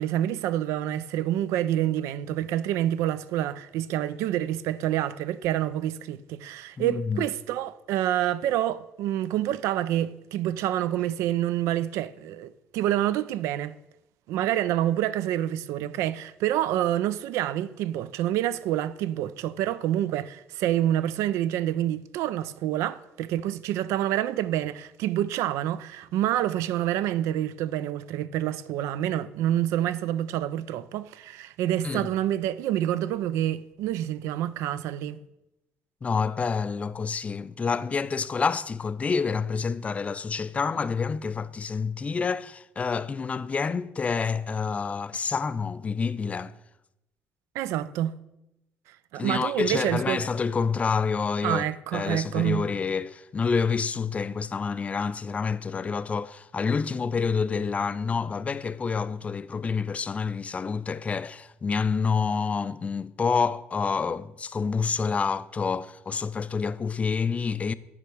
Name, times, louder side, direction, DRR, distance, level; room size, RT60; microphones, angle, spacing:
voice 1, 0.0-13.8 14.3-35.2 47.5-48.2 49.1-50.2 51.4-52.7, right 12 dB, 90° right, 0.4 m, -27 dB
voice 2, 6.8-7.3 31.8-32.1 36.0-46.5 49.2-51.6 51.9-67.7, left 5 dB, 30° left, 0.3 m, -28 dB
9.7 x 3.4 x 6.2 m
cardioid pair, 105°, 5 cm